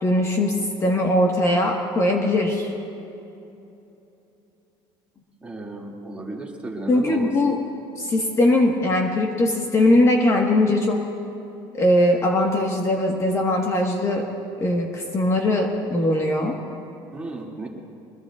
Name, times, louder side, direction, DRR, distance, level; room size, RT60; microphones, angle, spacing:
voice 1, 0.0-2.7 6.9-7.6 8.0-11.0 11.7-14.3 14.6-16.6, left 1 dB, 30° left, 1 dB, 1.4 m, -20 dB
voice 2, 5.4-7.3 17.1-17.7, right 2 dB, 10° right, -2 dB, 2.3 m, -34 dB
23.5 x 21.0 x 2.4 m, 2.8 s
cardioid pair, 130°, 10 cm